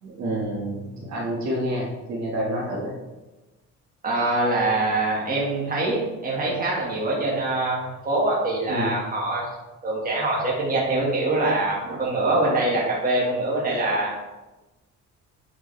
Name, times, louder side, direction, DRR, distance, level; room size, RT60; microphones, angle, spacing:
voice 1, 0.0-2.9 8.7-9.0, right 1 dB, 60° right, -3 dB, 1.9 m, -28 dB
voice 2, 4.0-9.5 9.8-14.1, right 2 dB, 25° right, -4 dB, 1.8 m, -24 dB
8.4 x 5.2 x 3.3 m, 1.1 s
cardioid pair, 150°, 31 cm